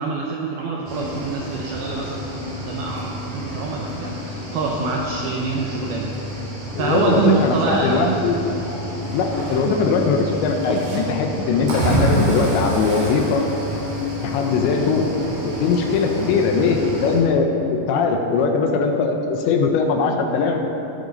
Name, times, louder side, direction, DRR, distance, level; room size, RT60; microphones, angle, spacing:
voice 1, 0.0-6.3 6.8-8.2 9.6-9.8, right 4 dB, 85° right, -1 dB, 2.2 m, -25 dB
Cricket / Waves surf, 0.9-17.2, equal, 60° right, 5.1 m, -28 dB
voice 2, 6.7-8.4 9.1-13.5 14.2-15.1 15.4-20.6, left 4 dB, 80° left, 3 dB, 3.0 m, -20 dB
17.0 x 9.3 x 5.4 m, 3.0 s
omnidirectional pair, 5.6 m